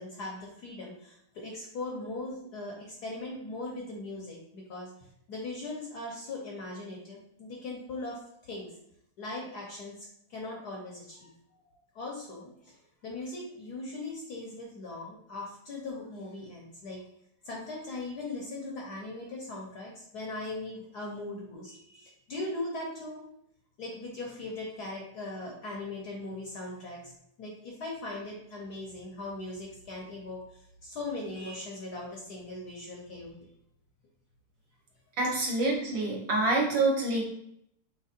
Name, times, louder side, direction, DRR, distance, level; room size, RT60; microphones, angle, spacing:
voice 1, 0.0-4.9 5.3-8.7 9.2-11.3 11.9-12.7 13.0-17.0 17.4-23.2 23.8-27.1 27.4-33.4, left 2 dB, 65° left, -2 dB, 1.0 m, -39 dB
voice 2, 35.2-37.2, right 2 dB, 65° right, -2 dB, 1.5 m, -26 dB
5.5 x 3.2 x 2.5 m, 0.72 s
omnidirectional pair, 2.4 m